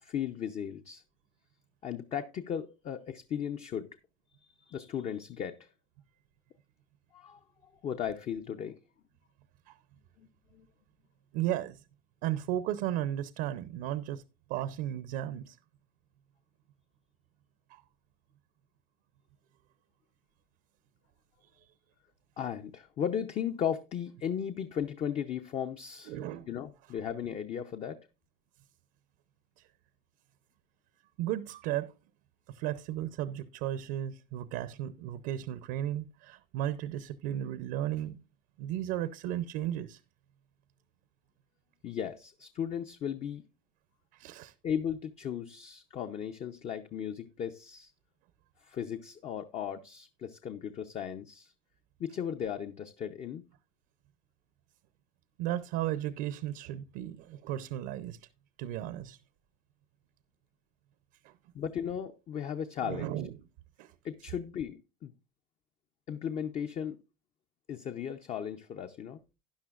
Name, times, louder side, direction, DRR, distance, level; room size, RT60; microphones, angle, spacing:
voice 1, 0.0-1.0 1.8-3.9 4.6-5.7 7.1-7.4 7.8-8.8 10.2-10.7 22.4-26.2 26.5-28.1 41.8-43.4 44.6-47.9 48.6-51.5 52.0-53.4 61.5-63.1 64.0-65.1 66.1-67.0 67.7-69.2, left 8 dB, 35° left, 0.6 m, -36 dB
voice 2, 11.3-11.8 12.2-14.2 14.5-15.6 17.7-17.8 26.1-26.5 29.6-29.7 31.2-31.9 32.5-38.2 38.6-40.0 44.1-44.5 55.4-58.2 58.6-59.2 61.2-61.3 62.8-63.3 63.8-63.9, right 12 dB, 70° right, 0.7 m, -35 dB
13.0 x 10.0 x 2.4 m
supercardioid pair, 125°, 18 cm